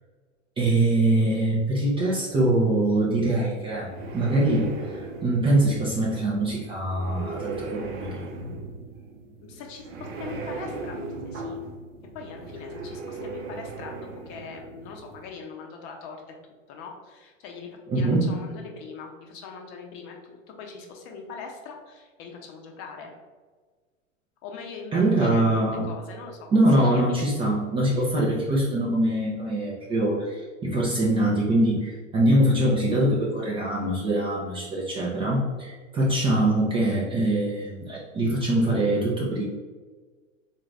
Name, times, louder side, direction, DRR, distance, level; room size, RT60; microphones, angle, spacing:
voice 1, 0.6-8.3 17.9-18.5 24.9-25.9 26.5-39.4, right 1 dB, 15° right, -5 dB, 0.4 m, -23 dB
sound 1, 3.5-15.2, right 2 dB, 50° right, 0.8 m, -38 dB
voice 2, 9.4-11.0 11.2-11.6 12.1-16.2 16.7-23.1 24.4-25.5 25.8-27.2 27.9-28.1, left 5 dB, 35° left, 2 dB, 0.7 m, -41 dB
3.8 x 2.5 x 3.2 m, 1.4 s
hypercardioid pair, 100°, 39 cm